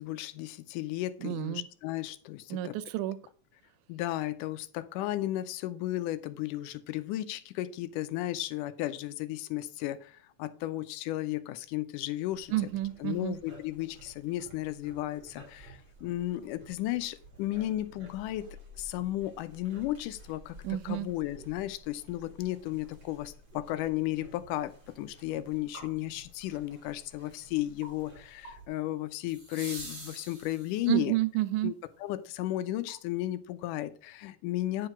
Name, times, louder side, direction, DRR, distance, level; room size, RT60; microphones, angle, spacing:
voice 1, 0.0-2.8 3.9-12.5 13.0-31.2 31.6-31.7 32.0-34.9, left 15 dB, 85° left, 2.1 m, -34 dB
voice 2, 1.2-1.7 2.5-3.2 12.5-13.4 20.6-21.1 30.9-31.7, right 16 dB, 80° right, 2.0 m, -30 dB
sound 1, 12.3-28.7, right 1 dB, 35° right, 2.8 m, -53 dB
sound 2, 23.6-23.7 29.3-31.1 33.2-33.3, right 1 dB, 15° right, 2.5 m, -45 dB
sound 3, 24.3-33.1, right 3 dB, 50° right, 6.5 m, -57 dB
9.8 x 4.8 x 5.8 m
omnidirectional pair, 3.8 m